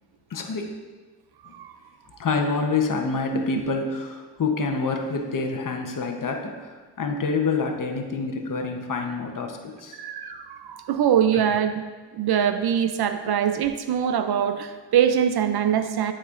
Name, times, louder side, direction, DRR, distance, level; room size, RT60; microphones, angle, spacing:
voice 1, 0.3-0.7 1.5-1.6 2.2-10.0 11.4-11.5, left 4 dB, 40° left, 3 dB, 1.0 m, -27 dB
voice 2, 9.9-11.8 12.1-16.1, right 9 dB, 55° right, 9 dB, 0.5 m, -23 dB
10.5 x 4.4 x 2.5 m, 1.4 s
supercardioid pair, 60°, 48 cm